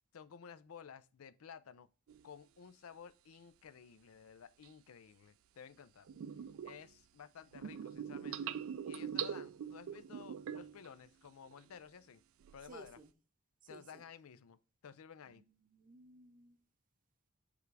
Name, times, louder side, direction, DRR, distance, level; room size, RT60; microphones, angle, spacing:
voice 1, 0.1-1.9 2.2-6.1 6.6-8.5 8.9-12.2 12.5-13.0 13.7-15.4, left 7 dB, 80° left, 0.5 m, -54 dB
sound 1, 2.1-2.2 4.6-4.7 6.1-6.9 7.5-10.9 11.3-11.7 12.4-12.9, right 8 dB, 70° right, 0.3 m, -43 dB
voice 2, 12.6-13.1 13.6-14.0 15.3-16.6, right 2 dB, 40° right, 0.7 m, -57 dB
7.0 x 3.4 x 4.6 m
head